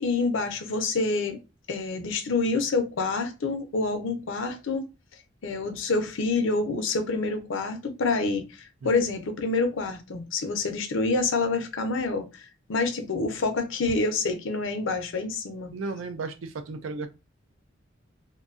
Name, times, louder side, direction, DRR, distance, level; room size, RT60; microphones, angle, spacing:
voice 1, 0.0-1.4 1.7-4.9 5.4-15.7, left 3 dB, 80° left, 0.6 m, -27 dB
voice 2, 15.7-17.1, right 3 dB, 90° right, 0.4 m, -34 dB
2.6 x 2.2 x 2.4 m
head